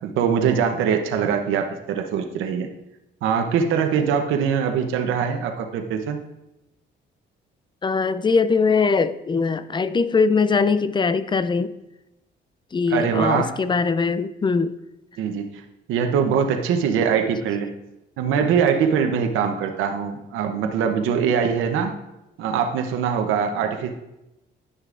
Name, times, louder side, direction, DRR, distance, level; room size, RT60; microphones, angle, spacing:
voice 1, 0.0-2.7 3.2-6.2 12.9-13.5 15.2-15.6 15.9-17.7 18.2-21.9 22.4-23.9, right 7 dB, 90° right, 5 dB, 0.7 m, -22 dB
voice 2, 7.8-11.7 12.7-14.8, left 4 dB, 25° left, 14 dB, 0.4 m, -21 dB
10.5 x 6.5 x 2.5 m, 0.93 s
cardioid pair, 90°, 20 cm